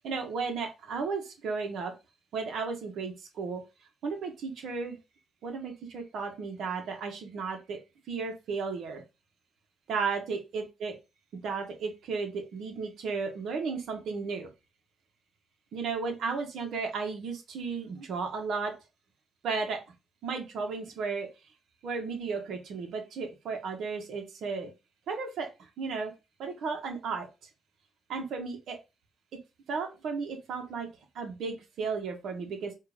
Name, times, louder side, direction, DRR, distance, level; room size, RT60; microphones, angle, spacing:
voice 1, 0.0-1.9 2.3-3.6 4.0-5.0 5.4-7.8 8.1-9.0 9.9-10.9 11.4-14.5 15.7-18.7 19.4-19.8 20.2-21.3 21.8-24.7 25.1-25.5 25.8-26.1 26.4-27.3 28.1-28.8 29.7-30.9 31.2-32.7, right 4 dB, 75° right, 4 dB, 1.7 m, -34 dB
8.1 x 3.0 x 5.2 m, 0.27 s
cardioid pair, 95°, 0 cm